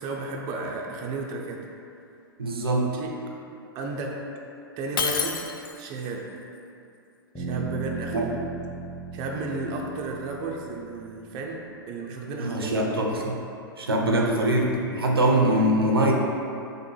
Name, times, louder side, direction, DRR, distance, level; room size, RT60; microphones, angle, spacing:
voice 1, 0.0-1.7 2.9-3.4 3.7-4.2 4.8-5.5 5.7-6.3 7.4-8.4 9.1-13.1 14.2-14.3, right 3 dB, 35° right, 0 dB, 0.4 m, -33 dB
voice 2, 2.4-2.9 8.1-8.3 12.4-13.4 13.8-16.1, right 1 dB, 90° right, 0 dB, 0.5 m, -23 dB
Shatter, 5.0-6.0, left 6 dB, 65° left, 0.4 m, -28 dB
sound 1, 7.3-11.3, right 4 dB, 10° left, 0.9 m, -37 dB
5.1 x 2.1 x 3.1 m, 2.6 s
hypercardioid pair, 110°, 12 cm